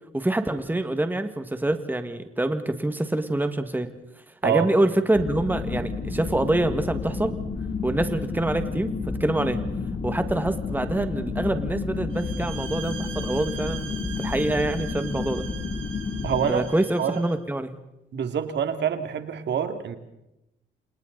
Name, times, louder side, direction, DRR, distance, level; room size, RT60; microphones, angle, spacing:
voice 1, 0.1-3.9 4.4-7.3 7.8-8.9 9.2-9.6 10.0-15.5 16.5-17.7, right 1 dB, 10° right, 8 dB, 1.8 m, -25 dB
sound 1, 5.1-16.5, left 4 dB, 45° left, 3.1 m, -31 dB
sound 2, 12.1-17.4, right 7 dB, 85° right, 3.4 m, -40 dB
voice 2, 16.2-16.6 17.0-17.2 18.1-20.0, right 8 dB, 60° right, 8 dB, 2.5 m, -26 dB
29.0 x 28.0 x 4.0 m, 0.88 s
cardioid pair, 90°, 20 cm